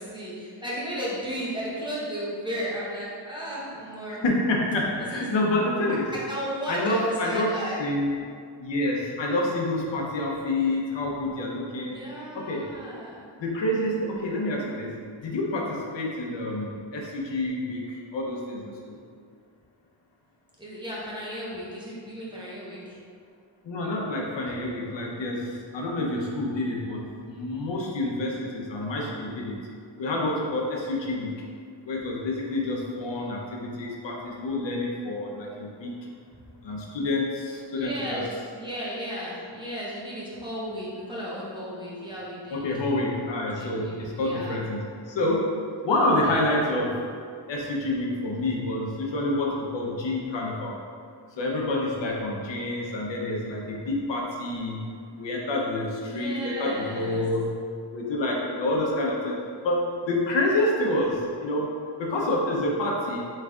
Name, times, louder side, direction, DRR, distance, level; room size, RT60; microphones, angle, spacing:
voice 1, 0.0-4.2 5.1-5.4 6.1-7.8 8.1-8.2 11.8-13.3 20.6-23.0 37.7-38.3 38.5-42.6 43.5-44.6 56.0-57.2, equal, 10° right, -8 dB, 0.9 m, -34 dB
voice 2, 4.1-6.1 6.7-8.1 8.6-12.0 12.3-12.7 13.4-19.0 23.6-29.6 30.0-31.4 31.8-35.9 36.6-38.2 42.5-45.6 45.8-47.0 47.5-50.8 51.3-57.7 57.9-59.4 59.6-61.7 62.0-63.2, left 1 dB, 70° left, -2 dB, 0.7 m, -28 dB
3.6 x 3.2 x 3.5 m, 2.2 s
wide cardioid pair, 120°, 45 cm